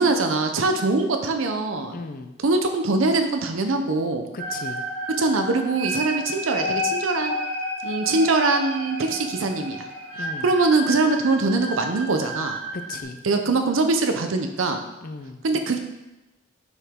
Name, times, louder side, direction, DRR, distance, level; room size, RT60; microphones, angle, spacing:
voice 1, 0.0-2.0 2.4-4.3 5.2-7.4 7.8-9.8 10.2-12.6 13.2-14.8 15.4-15.8, right 3 dB, 85° right, 5 dB, 0.6 m, -22 dB
voice 2, 1.9-2.3 4.3-4.8 10.1-10.5 12.7-13.2 15.0-15.4, left 3 dB, 45° left, 7 dB, 0.5 m, -36 dB
sound 1, 4.4-13.0, equal, 60° right, 1.9 m, -31 dB
6.7 x 4.8 x 3.6 m, 1.0 s
head